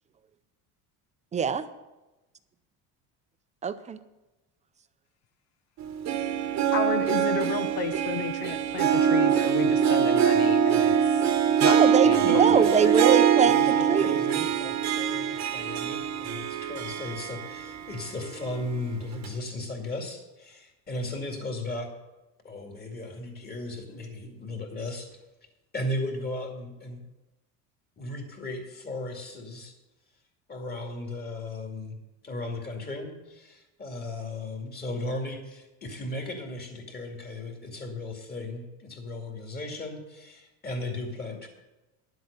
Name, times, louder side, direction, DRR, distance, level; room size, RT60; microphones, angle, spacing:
voice 1, 1.3-1.7 3.6-4.0 11.6-14.5, right 6 dB, 20° right, 11 dB, 0.5 m, -24 dB
Harp, 5.8-17.9 18.3-18.4 19.2-19.3, right 8 dB, 45° right, 1.1 m, -23 dB
voice 2, 6.7-11.3 11.6-12.7, left 8 dB, 75° left, 7 dB, 1.0 m, -33 dB
voice 3, 12.2-13.0 13.4-21.9 22.4-25.1 25.7-27.0 28.0-29.7 30.5-31.9 32.2-41.5, left 2 dB, 25° left, 2 dB, 2.3 m, -36 dB
11.0 x 7.8 x 6.8 m, 1.1 s
cardioid pair, 140°, 38 cm